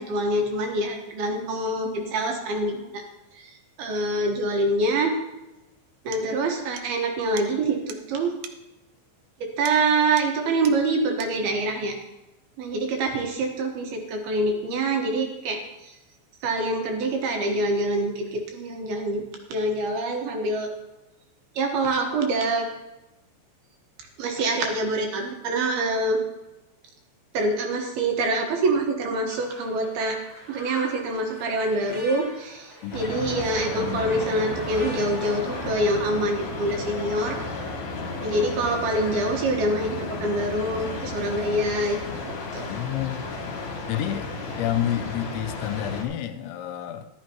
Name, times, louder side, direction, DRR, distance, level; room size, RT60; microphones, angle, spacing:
voice 1, 0.0-3.0 3.3-5.1 6.0-8.3 9.4-12.0 12.6-16.0 16.4-19.2 19.5-20.7 21.6-22.7 24.2-26.2 27.3-30.2 30.5-37.4 38.2-42.7, right 2 dB, 65° right, 2 dB, 3.0 m, -25 dB
sound 1, 5.6-5.7 6.1-6.3 6.8-6.9 7.4-7.5 7.9-8.0 8.4-8.6 9.7-9.9 10.2-10.4 10.6-10.8 11.2-11.4, right 9 dB, 85° right, 2.3 m, -41 dB
sound 2, 29.3-35.7, equal, 20° right, 2.6 m, -43 dB
voice 2, 32.8-34.2 42.7-43.2 43.9-44.3 44.6-47.1, left 11 dB, 85° left, 7 dB, 3.2 m, -30 dB
sound 3, 32.9-46.0, left 3 dB, 50° left, 2.6 m, -33 dB
14.0 x 12.5 x 3.0 m, 0.99 s
omnidirectional pair, 5.2 m